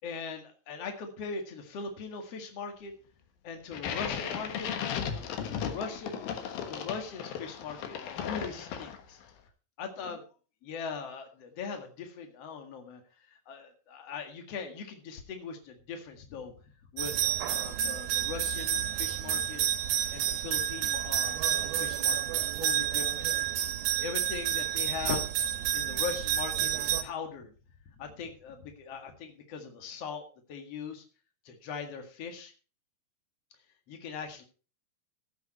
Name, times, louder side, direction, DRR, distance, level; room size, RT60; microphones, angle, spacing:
voice 1, 0.0-2.9 3.4-4.7 5.6-9.2 9.8-10.2 10.6-13.0 13.5-16.5 16.9-19.6 20.1-23.3 24.0-25.2 25.7-27.5 28.0-30.2 30.5-31.0 31.5-32.5 33.9-34.4, left 5 dB, 50° left, 5 dB, 2.7 m, -40 dB
sound 1, 3.7-9.2, left 8 dB, 85° left, 3.2 m, -36 dB
sound 2, 17.0-27.0, right 10 dB, 90° right, 2.7 m, -30 dB
15.0 x 8.5 x 4.3 m, 0.36 s
omnidirectional pair, 4.1 m